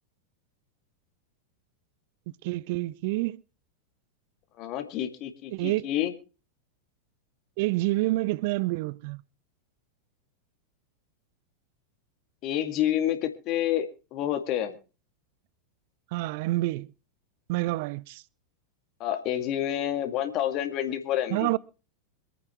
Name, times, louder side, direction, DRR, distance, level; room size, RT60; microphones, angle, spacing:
voice 1, 2.4-3.4 5.5-5.9 7.6-9.2 16.1-16.9 17.5-18.2 21.3-21.6, right 20 dB, 50° right, 0.6 m, -28 dB
voice 2, 4.6-6.1 12.4-14.8 19.0-21.5, left 11 dB, 40° left, 2.2 m, -29 dB
26.5 x 9.5 x 3.0 m
figure-of-eight pair, 90°, 0 cm